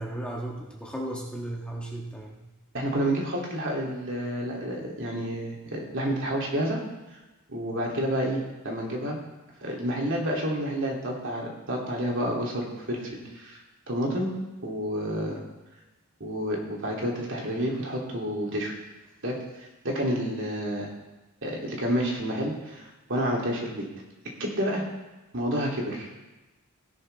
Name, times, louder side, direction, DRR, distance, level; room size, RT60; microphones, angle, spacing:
voice 1, 0.0-2.4, right 1 dB, 5° left, -3 dB, 1.4 m, -35 dB
voice 2, 2.7-6.8 7.5-9.2 9.6-13.6 13.9-14.3 14.6-15.4 16.2-18.7 19.2-20.9 21.4-23.9 24.4-24.8 25.3-26.1, equal, 55° right, -2 dB, 2.8 m, -29 dB
17.0 x 10.5 x 3.4 m, 1.1 s
head